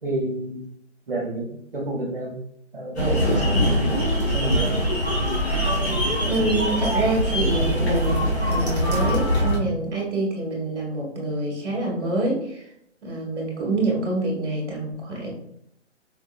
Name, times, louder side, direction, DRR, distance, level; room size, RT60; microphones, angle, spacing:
voice 1, 0.0-0.6 1.1-2.4 2.7-4.0 4.3-4.8 9.6-9.7, right 2 dB, 45° right, -1 dB, 0.7 m, -29 dB
sound 1, 3.0-9.6, equal, 60° left, 1.2 m, -22 dB
voice 2, 6.2-12.6 13.0-15.3, right 2 dB, 5° right, -4 dB, 0.8 m, -26 dB
4.4 x 2.2 x 2.4 m, 0.73 s
hypercardioid pair, 175°, 37 cm